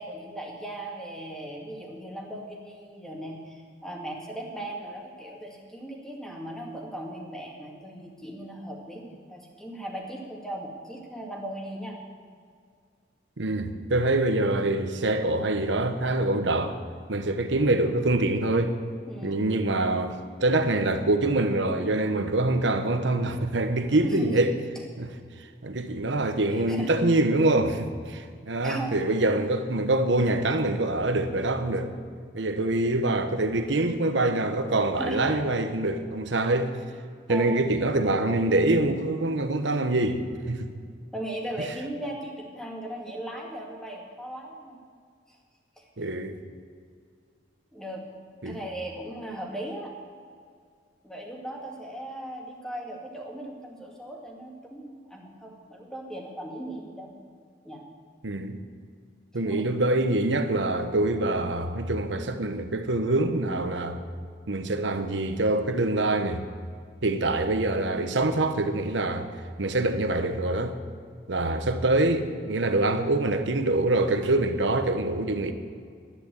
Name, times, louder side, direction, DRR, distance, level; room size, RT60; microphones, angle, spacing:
voice 1, 0.0-12.0 19.1-19.4 24.0-24.4 26.5-26.9 28.6-29.0 35.0-35.4 37.3-37.6 38.7-38.9 41.1-44.8 45.3-45.4 45.8-45.9 47.7-48.0 48.4-49.9 51.0-57.1 57.6-57.8 59.4-59.7 71.5-71.6, right 1 dB, 5° left, 2.2 m, -37 dB
voice 2, 13.4-16.8 17.1-18.7 19.2-24.5 25.0-25.1 25.6-31.9 32.3-36.7 37.3-40.7 46.0-46.4 48.4-48.6 58.2-58.6 59.3-64.0 64.5-66.4 67.0-69.3 69.6-70.7 71.3-75.5, right 2 dB, 80° right, 1.1 m, -25 dB
11.5 x 10.0 x 8.1 m
head